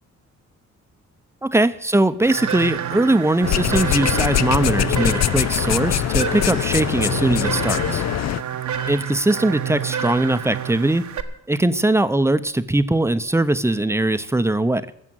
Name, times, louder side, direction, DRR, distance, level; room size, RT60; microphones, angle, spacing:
voice 1, 1.4-8.0 8.9-11.0 11.5-14.9, right 2 dB, 10° right, 12 dB, 0.8 m, -20 dB
sound 1, 2.2-11.2, right 8 dB, 75° right, 1.3 m, -29 dB
sound 2, 3.4-8.4, left 12 dB, 60° left, 0.6 m, -22 dB
15.0 x 7.6 x 9.1 m, 0.76 s
cardioid pair, 105°, 29 cm